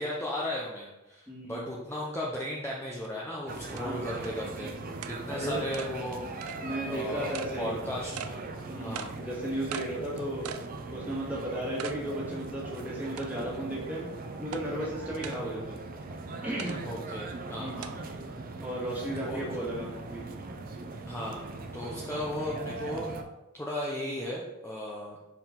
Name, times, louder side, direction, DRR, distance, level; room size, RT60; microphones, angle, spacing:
voice 1, 0.0-4.7 5.1-6.4 6.8-8.5 8.8-9.2 16.8-18.0 19.1-19.4 21.1-23.1 23.6-25.2, left 1 dB, 10° left, -4 dB, 0.7 m, -36 dB
voice 2, 1.3-1.7 3.8-4.1 5.3-5.6 6.6-7.8 8.7-10.5 10.9-14.1 14.4-15.8 16.4-16.8 17.6-17.9 18.6-20.2, right 1 dB, 10° right, -6 dB, 1.9 m, -35 dB
sound 1, 3.0-3.1 3.8-3.9 4.2-4.3 5.0-5.2 5.7-5.9 6.4-6.6 7.3-7.5 8.2-8.3 8.9-9.1 9.7-9.9 10.4-10.7 11.1-11.2 11.8-12.0 12.4-12.5 13.2-13.6 14.5-14.6 15.2-15.4 16.6-16.8 17.8-17.9, right 7 dB, 90° right, 0.4 m, -39 dB
sound 2, 3.5-23.2, right 3 dB, 40° right, 0.5 m, -40 dB
5.8 x 4.6 x 3.7 m, 1.0 s
head